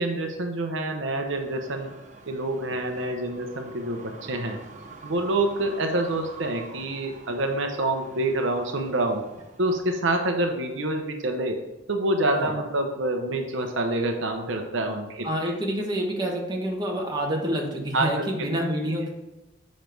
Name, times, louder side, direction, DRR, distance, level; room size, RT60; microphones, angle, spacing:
voice 1, 0.0-1.9 2.3-4.6 5.0-9.2 9.6-11.6 11.9-15.3 17.9-18.5, right 1 dB, 65° right, 4 dB, 0.8 m, -27 dB
sound 1, 1.3-10.0, right 2 dB, 35° right, 0.7 m, -46 dB
voice 2, 15.2-19.1, equal, 20° right, -1 dB, 1.2 m, -28 dB
7.3 x 5.2 x 4.6 m, 1.0 s
head